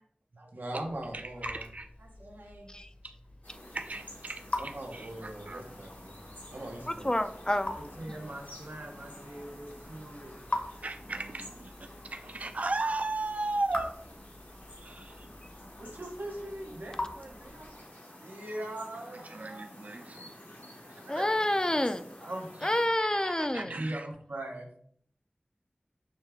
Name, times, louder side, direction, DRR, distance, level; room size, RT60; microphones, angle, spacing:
voice 1, 0.4-1.7 2.0-2.8 4.6-6.2 6.5-7.2 7.8-10.5 12.2-12.3 15.8-17.8 18.2-19.7 20.2-20.3 21.0-21.3 22.2-22.5 23.5-24.8, right 1 dB, 85° right, 0.8 m, -41 dB
Raindrop / Drip, 0.7-17.9, left 1 dB, 50° left, 0.9 m, -43 dB
voice 2, 1.1-1.9 3.7-5.7 10.8-13.9 14.8-15.2 19.3-20.3 22.9-24.1, right 2 dB, 50° right, 0.4 m, -36 dB
sound 1, 3.4-22.9, left 1 dB, 80° left, 1.3 m, -50 dB
voice 3, 6.9-7.8 21.1-22.0 22.6-23.8, left 1 dB, 25° left, 0.3 m, -28 dB
6.2 x 2.3 x 3.3 m
wide cardioid pair, 45°, 3 cm